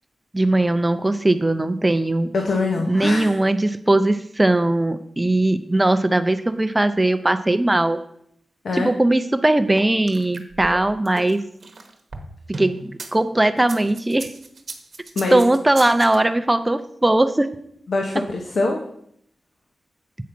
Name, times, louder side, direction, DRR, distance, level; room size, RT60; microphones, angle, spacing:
voice 1, 0.3-2.3 2.9-8.0 8.7-11.4 12.6-14.3 15.3-17.5, right 2 dB, 15° right, 10 dB, 0.4 m, -19 dB
voice 2, 2.3-3.3 8.6-8.9 15.2-15.4 17.9-18.8, left 3 dB, 60° left, 2 dB, 0.9 m, -23 dB
sound 1, 9.8-13.1 13.6-16.2, right 3 dB, 45° right, 1.1 m, -36 dB
8.3 x 4.8 x 5.9 m, 0.70 s
wide cardioid pair, 175°, 0 cm